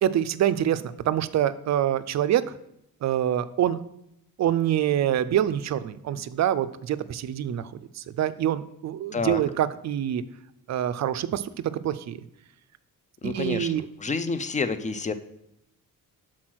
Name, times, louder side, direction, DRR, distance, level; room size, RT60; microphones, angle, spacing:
voice 1, 0.0-2.4 3.0-3.8 4.4-7.7 8.0-10.2 10.7-11.4 11.8-12.2 13.2-13.9, right 11 dB, 55° right, 14 dB, 0.4 m, -25 dB
voice 2, 13.2-13.7 14.0-15.1, left 4 dB, 20° left, 11 dB, 0.4 m, -28 dB
6.1 x 4.3 x 6.1 m, 0.78 s
cardioid pair, 115°, 34 cm